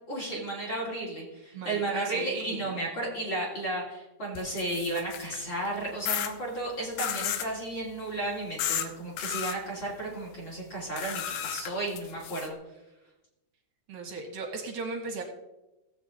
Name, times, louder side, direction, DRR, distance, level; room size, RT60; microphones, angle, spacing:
voice 1, 0.1-12.6, right 2 dB, 35° left, -5 dB, 3.3 m, -33 dB
voice 2, 1.5-2.6 13.9-15.2, right 4 dB, 60° right, 3 dB, 1.7 m, -37 dB
sound 1, 4.3-5.4 6.0-6.3 7.0-7.5 8.6-8.9 9.2-9.6 11.0-12.5, left 10 dB, 75° left, 1.9 m, -33 dB
16.0 x 8.0 x 3.8 m, 0.99 s
omnidirectional pair, 4.0 m